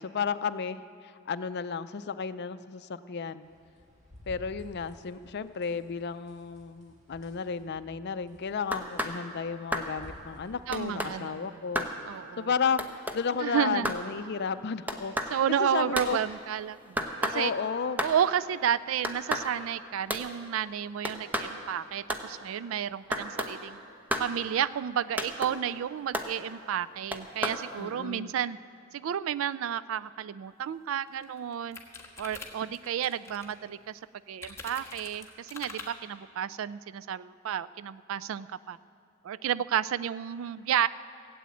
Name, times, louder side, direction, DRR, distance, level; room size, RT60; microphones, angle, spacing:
voice 1, 0.0-3.5 4.3-11.9 12.4-16.2 17.3-18.0 27.8-28.3, left 6 dB, 55° left, 12 dB, 0.5 m, -33 dB
sound 1, 3.4-11.2, left 1 dB, 35° right, 2.1 m, -54 dB
sound 2, 8.7-9.2 9.7-9.9 10.7-11.1 11.7-11.9 12.8-13.2 13.8-14.0 14.9-15.3 15.9-16.1 17.0-17.4 18.0-18.2 19.0-19.5 20.1-20.2 21.0-21.5 22.1-22.2 23.1-23.5 24.1-24.3 25.2-25.5 26.1-26.3 27.1-27.6, equal, 10° right, 0.9 m, -31 dB
voice 2, 10.7-11.6 12.1-12.5 13.4-13.9 15.3-17.5 18.0-23.8 24.2-28.6 28.9-31.8 32.2-34.0 34.3-38.8 39.2-40.9, right 9 dB, 70° right, 17 dB, 0.3 m, -31 dB
sound 3, 30.6-30.7 31.1-33.5 34.4-35.9, left 3 dB, 15° left, 1.5 m, -44 dB
17.0 x 8.5 x 8.3 m, 2.3 s
head